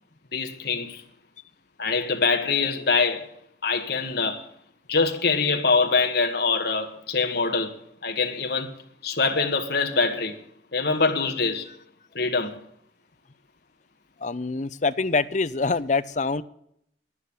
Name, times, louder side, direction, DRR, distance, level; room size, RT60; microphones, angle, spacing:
voice 1, 0.3-1.0 1.8-3.3 3.6-4.5 4.9-8.7 9.0-10.4 10.7-11.7 12.2-12.6, left 4 dB, 55° left, 1.7 m, -24 dB
voice 2, 14.2-16.4, left 4 dB, 40° left, 0.6 m, -25 dB
11.0 x 9.7 x 9.7 m
head